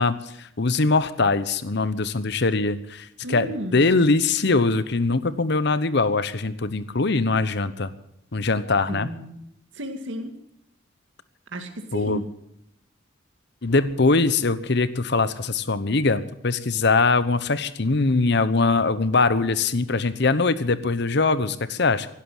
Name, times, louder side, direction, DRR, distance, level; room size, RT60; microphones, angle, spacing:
voice 1, 0.0-7.9 8.3-9.1 11.9-12.2 13.6-22.1, left 3 dB, 60° left, 14 dB, 1.0 m, -22 dB
voice 2, 3.2-3.8 8.9-9.4 9.7-10.3 11.5-12.2, equal, 75° right, 5 dB, 2.2 m, -33 dB
16.5 x 12.0 x 7.3 m, 0.78 s
head